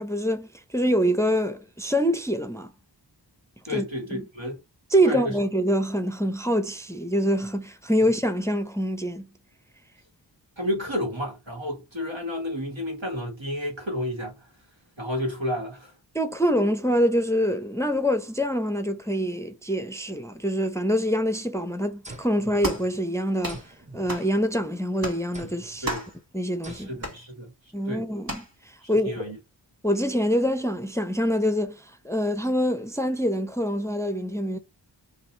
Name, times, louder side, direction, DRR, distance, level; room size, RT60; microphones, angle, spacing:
voice 1, 0.0-2.7 3.7-3.8 4.1-4.2 4.9-9.3 16.1-23.6 23.9-25.9 26.3-26.9 27.7-29.1 29.8-34.6, equal, 5° left, 0.5 m, -25 dB
voice 2, 3.7-4.6 5.0-5.3 10.6-14.5 15.0-15.9 25.8-26.0 26.7-27.5 27.9-28.1 28.8-29.4, left 1 dB, 80° right, 1.7 m, -31 dB
sound 1, 22.0-23.1 23.5-24.8 25.3-25.9 26.6-27.3, right 2 dB, 15° right, 0.8 m, -45 dB
sound 2, 22.6-22.9 23.4-23.7 24.1-24.3 25.0-25.2 25.9-26.2 27.0-27.2 28.3-28.5, right 1 dB, 50° right, 1.5 m, -32 dB
2.7 x 2.6 x 4.2 m
wide cardioid pair, 40°, 45 cm